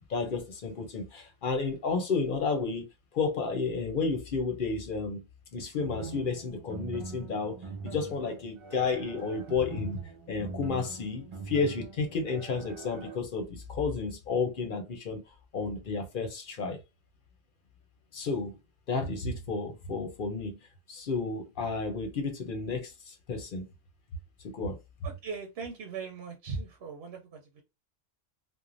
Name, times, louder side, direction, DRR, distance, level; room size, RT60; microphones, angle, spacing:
voice 1, 0.1-2.9 3.1-5.2 5.5-10.0 10.3-15.2 15.5-16.8 18.1-18.6 18.9-20.6 20.9-23.6 24.4-24.8, left 4 dB, 60° left, 0.8 m, -32 dB
sound 1, 5.8-13.2, right 3 dB, 55° right, 0.3 m, -43 dB
voice 2, 25.0-27.6, right 5 dB, 75° right, 0.9 m, -39 dB
3.0 x 2.1 x 2.5 m
omnidirectional pair, 1.0 m